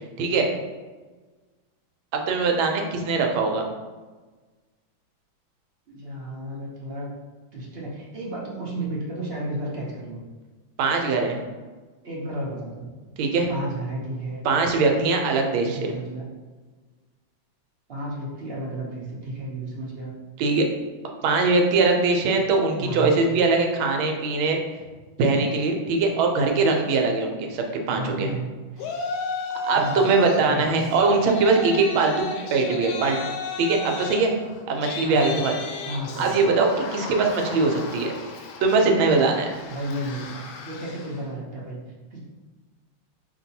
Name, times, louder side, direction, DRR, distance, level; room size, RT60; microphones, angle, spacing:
voice 1, 0.2-0.5 2.1-3.6 10.8-11.4 13.2-13.5 14.4-15.9 20.4-20.7 21.2-24.6 25.2-28.3 29.6-33.2 33.6-34.3 34.7-35.5 36.2-38.1 38.6-39.5, right 3 dB, 85° right, 2 dB, 1.4 m, -21 dB
voice 2, 5.9-7.1 7.5-10.2 12.0-12.9 13.5-14.4 15.6-16.3 17.9-20.1 22.8-23.2 27.9-28.5 29.7-30.0 30.4-30.9 35.0-35.3 35.8-36.4 39.7-41.8 42.1-42.2, right 1 dB, 65° right, -4 dB, 0.6 m, -32 dB
Yell, 28.8-30.4 30.8-41.2, left 4 dB, 85° left, 1.4 m, -34 dB
5.2 x 2.9 x 2.7 m, 1.3 s
omnidirectional pair, 2.2 m